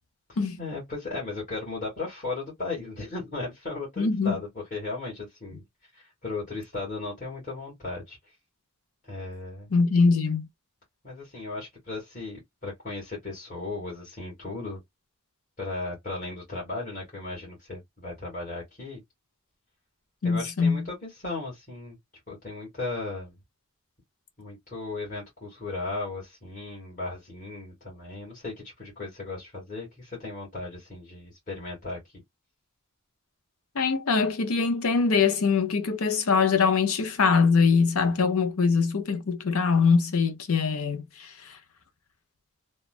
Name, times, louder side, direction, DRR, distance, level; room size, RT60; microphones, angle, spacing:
voice 1, 0.3-8.2 9.1-9.7 11.0-14.8 15.6-19.0 20.2-22.0 22.3-23.3 24.4-32.0, left 3 dB, 35° left, 1.7 m, -36 dB
voice 2, 4.0-4.4 9.7-10.5 20.2-20.9 33.7-41.6, left 5 dB, 85° left, 0.7 m, -23 dB
3.1 x 2.2 x 2.4 m
head